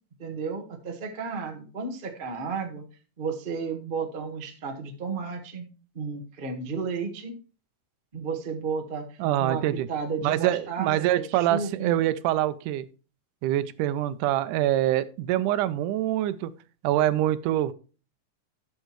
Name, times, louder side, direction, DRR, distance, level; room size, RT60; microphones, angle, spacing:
voice 1, 0.2-2.8 3.2-5.6 5.9-7.3 8.1-11.9, right 5 dB, 50° right, 2 dB, 0.6 m, -33 dB
voice 2, 9.2-9.9 10.2-12.9 13.4-16.5 16.8-17.7, right 13 dB, 85° right, 15 dB, 2.1 m, -25 dB
12.5 x 6.5 x 3.1 m, 0.35 s
omnidirectional pair, 3.6 m